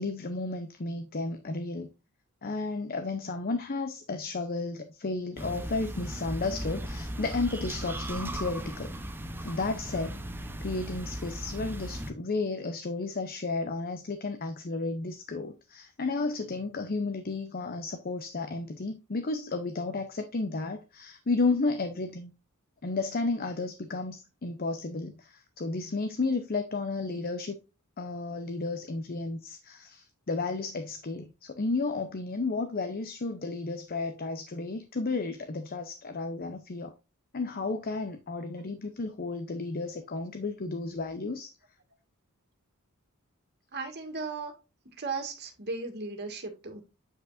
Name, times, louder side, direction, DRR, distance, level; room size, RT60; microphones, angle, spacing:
voice 1, 0.0-1.9 2.4-8.9 9.4-10.3 10.6-22.3 22.8-27.6 28.0-36.9 37.3-41.5, left 3 dB, 45° left, 0.7 m, -33 dB
sound 1, 5.4-12.1, right 1 dB, 10° right, 0.7 m, -37 dB
voice 2, 43.7-44.5 45.0-46.8, right 4 dB, 50° right, 1.9 m, -36 dB
8.5 x 5.2 x 2.5 m
head